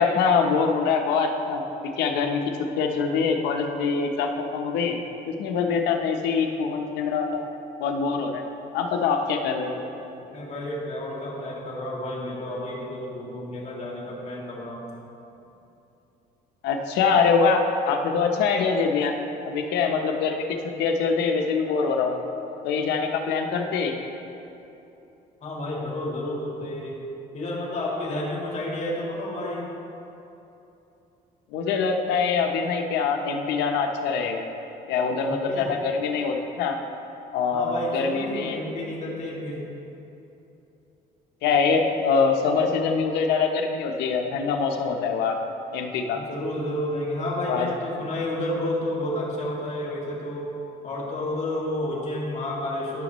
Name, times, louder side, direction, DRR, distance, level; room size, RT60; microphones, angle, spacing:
voice 1, 0.0-1.6 2.0-2.4 2.8-5.0 5.3-7.5 7.8-8.4 8.7-9.8 16.6-19.1 19.4-22.1 22.6-23.9 31.5-34.4 34.9-36.8 37.3-38.6 41.4-46.2 47.4-47.7, left 5 dB, 85° left, 3 dB, 0.8 m, -24 dB
voice 2, 10.2-14.8 25.4-27.0 27.3-29.7 35.2-35.7 37.5-39.6 46.1-50.5 50.8-53.0, left 1 dB, 40° left, -3 dB, 2.1 m, -30 dB
15.0 x 6.1 x 3.1 m, 2.9 s
cardioid pair, 110°, 17 cm